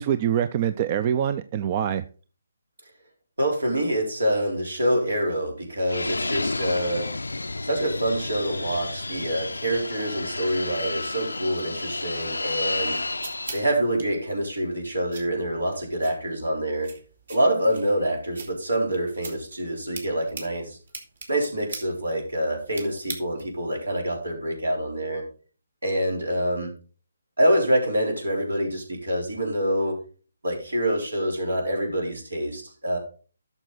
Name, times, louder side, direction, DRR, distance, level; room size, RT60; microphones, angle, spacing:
voice 1, 0.0-2.0, right 9 dB, 35° right, 12 dB, 0.5 m, -24 dB
voice 2, 3.4-7.1 7.6-13.0 13.5-16.9 17.3-20.8 21.3-25.2 25.8-26.7 27.4-30.0 30.4-33.0, right 1 dB, 80° right, 2 dB, 3.9 m, -26 dB
Fixed-wing aircraft airplane, 5.9-13.7, left 2 dB, 85° left, 0.5 m, -31 dB
sound 1, 12.6-23.7, right 3 dB, 60° right, 2.8 m, -43 dB
11.5 x 6.7 x 4.0 m, 0.38 s
figure-of-eight pair, 145°, 0 cm